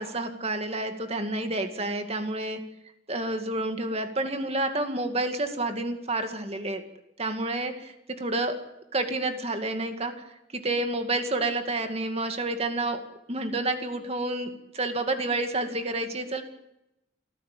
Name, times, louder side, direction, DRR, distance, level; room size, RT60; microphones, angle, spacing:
voice 1, 0.0-2.6 3.1-6.8 7.2-8.5 8.9-10.2 10.5-13.0 13.3-16.4, right 2 dB, 30° right, 6 dB, 2.3 m, -29 dB
27.0 x 15.0 x 8.6 m, 0.88 s
head